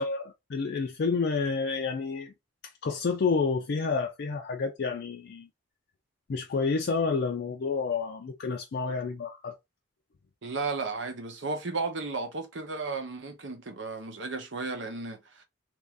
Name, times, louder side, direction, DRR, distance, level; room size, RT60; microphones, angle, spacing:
voice 1, 0.0-2.3 2.8-5.5 6.3-9.5, left 4 dB, 60° left, 0.4 m, -29 dB
voice 2, 10.4-15.4, right 3 dB, 70° right, 0.8 m, -34 dB
3.0 x 2.6 x 3.4 m
head